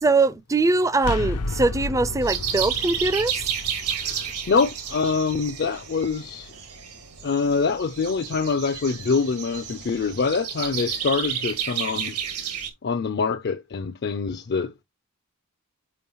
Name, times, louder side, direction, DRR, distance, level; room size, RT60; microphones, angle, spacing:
voice 1, 0.0-3.4, right 3 dB, 15° right, 0.3 m, -22 dB
sound 1, 1.0-6.7, left 2 dB, 85° left, 0.7 m, -34 dB
sound 2, 2.2-12.7, right 8 dB, 85° right, 1.8 m, -31 dB
voice 2, 3.9-6.5 7.2-14.8, left 5 dB, 50° left, 0.5 m, -25 dB
6.9 x 5.4 x 3.0 m
head